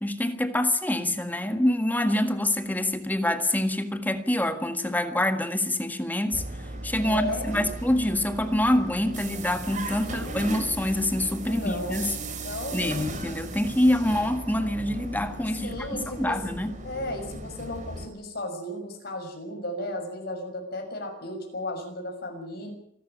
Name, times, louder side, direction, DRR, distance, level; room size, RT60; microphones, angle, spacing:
voice 1, 0.0-6.4 6.8-12.2 12.7-15.8 16.2-16.8, left 1 dB, 10° left, 1.7 m, -26 dB
sound 1, 6.3-18.1, right 2 dB, 40° right, 3.9 m, -37 dB
voice 2, 7.0-7.6 10.0-10.7 11.4-13.1 15.6-16.4 16.8-22.7, left 1 dB, 55° left, 6.5 m, -35 dB
26.5 x 12.5 x 9.0 m
head